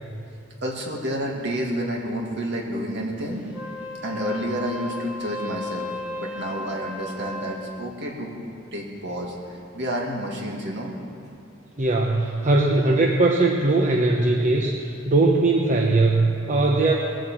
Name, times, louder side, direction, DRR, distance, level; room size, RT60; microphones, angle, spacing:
voice 1, 0.6-3.4 4.0-8.4 8.7-9.3 9.7-10.9, equal, 60° right, -1 dB, 2.4 m, -29 dB
Wind instrument woodwind instrument, 3.4-7.7, left 2 dB, 5° right, 2.3 m, -35 dB
voice 2, 11.8-16.9, right 2 dB, 40° right, 0 dB, 0.9 m, -20 dB
20.5 x 7.9 x 7.6 m, 2.5 s
head